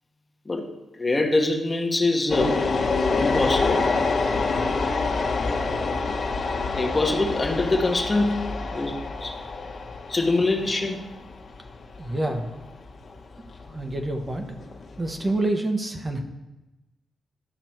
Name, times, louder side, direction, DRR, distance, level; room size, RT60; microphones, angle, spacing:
voice 1, 0.9-2.6 3.1-3.9 6.8-8.4 8.7-9.3 10.1-11.1, left 2 dB, 25° left, 3 dB, 1.1 m, -24 dB
sound 1, 2.3-15.4, left 3 dB, 55° left, 1.2 m, -27 dB
voice 2, 12.0-12.5 13.7-14.5 15.0-16.2, right 2 dB, 25° right, 4 dB, 1.0 m, -27 dB
11.0 x 5.9 x 4.5 m, 1.0 s
cardioid pair, 105°, 0 cm